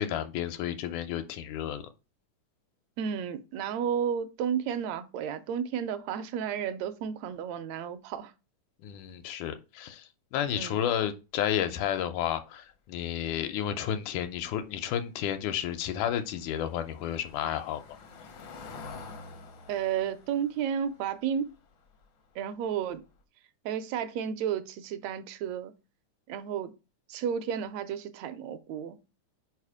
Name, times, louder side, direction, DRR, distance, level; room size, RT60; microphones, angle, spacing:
voice 1, 0.0-1.9 8.8-17.8, left 10 dB, 90° left, 2.1 m, -31 dB
voice 2, 3.0-8.3 10.5-10.8 19.7-21.5 22.3-23.0 23.6-25.7 26.3-26.7 27.1-29.0, right 8 dB, 80° right, 1.7 m, -32 dB
Car passing by / Engine, 15.4-22.3 22.7-22.9 23.2-23.3, left 4 dB, 70° left, 1.1 m, -49 dB
5.0 x 4.8 x 4.8 m
omnidirectional pair, 3.5 m